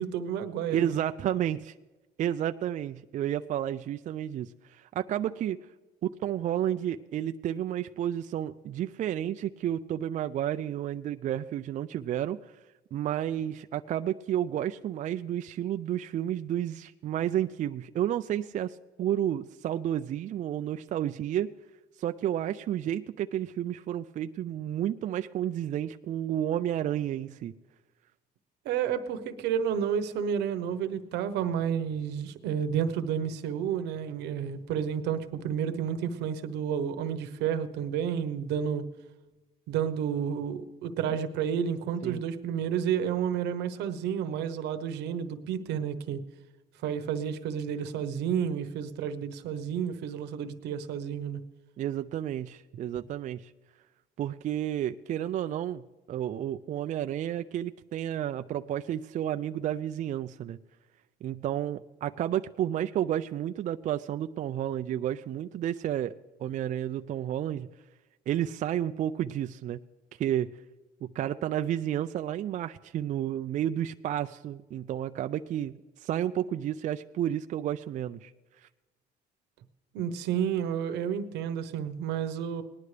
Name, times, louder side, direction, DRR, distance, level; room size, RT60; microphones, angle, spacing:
voice 1, 0.0-0.9 28.6-38.8 39.7-46.2 46.8-51.4 79.9-82.6, right 8 dB, 85° right, 9 dB, 1.0 m, -31 dB
voice 2, 0.7-1.7 2.2-5.6 6.0-12.4 12.9-21.5 22.0-27.5 41.1-41.2 42.0-42.2 51.8-53.5 54.2-55.8 56.1-60.6 61.2-66.1 66.4-67.7 68.3-69.8 70.2-70.5 71.0-75.7 76.0-78.3, right 11 dB, 45° right, 9 dB, 0.4 m, -31 dB
19.0 x 11.0 x 3.3 m, 1.1 s
cardioid pair, 110°, 17 cm